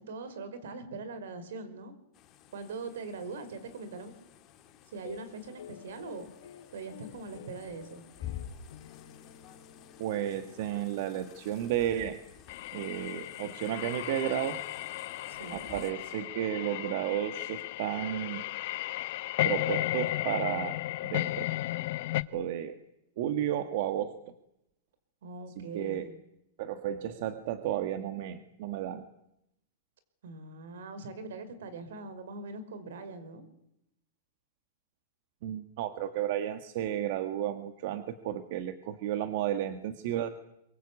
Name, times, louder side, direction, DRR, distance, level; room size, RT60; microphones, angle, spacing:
voice 1, 0.0-1.9 2.5-4.1 4.9-6.3 6.7-8.0 15.3-15.7 25.2-26.1 30.2-33.4, right 3 dB, 75° right, 12 dB, 5.3 m, -42 dB
sound 1, 2.1-15.9, left 10 dB, 25° left, 2.6 m, -50 dB
sound 2, 5.0-11.6, left 9 dB, 80° left, 3.2 m, -52 dB
voice 2, 10.0-12.2 12.7-14.6 15.5-18.4 19.4-20.8 21.0-21.4 22.3-22.8 23.2-24.3 25.6-26.1 26.6-29.1 35.4-40.3, right 11 dB, 45° right, 9 dB, 1.7 m, -33 dB
sound 3, 12.5-22.2, left 16 dB, 50° left, 1.0 m, -34 dB
25.5 x 23.5 x 8.5 m, 0.81 s
supercardioid pair, 165°, 0 cm